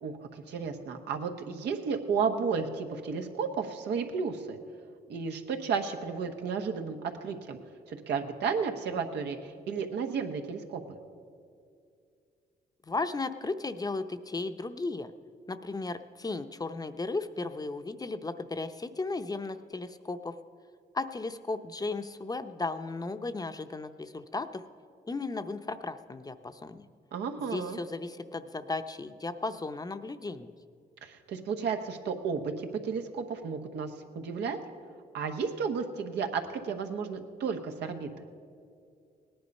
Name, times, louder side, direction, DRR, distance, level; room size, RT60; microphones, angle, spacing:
voice 1, 0.0-4.6 5.1-7.6 7.9-10.8 27.1-27.8 31.0-34.6 35.1-38.1, right 5 dB, 90° right, 5 dB, 1.1 m, -33 dB
voice 2, 12.8-15.1 15.5-20.3 20.9-24.6 25.1-26.9 27.4-30.5, left 3 dB, 20° left, 9 dB, 0.7 m, -35 dB
18.0 x 10.5 x 5.4 m, 2.3 s
cardioid pair, 85°, 17 cm